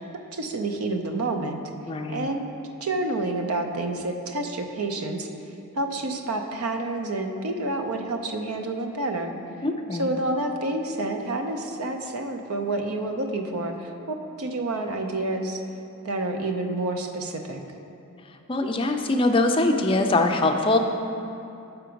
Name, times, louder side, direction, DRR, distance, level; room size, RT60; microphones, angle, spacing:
voice 1, 0.3-1.6 2.1-2.4 2.8-5.3 5.7-9.3 9.9-15.6 16.0-17.6, right 2 dB, 80° right, 4 dB, 0.6 m, -29 dB
voice 2, 1.9-2.3 9.6-10.1 18.5-20.8, left 2 dB, 25° left, 4 dB, 0.4 m, -22 dB
6.7 x 5.8 x 5.1 m, 2.8 s
head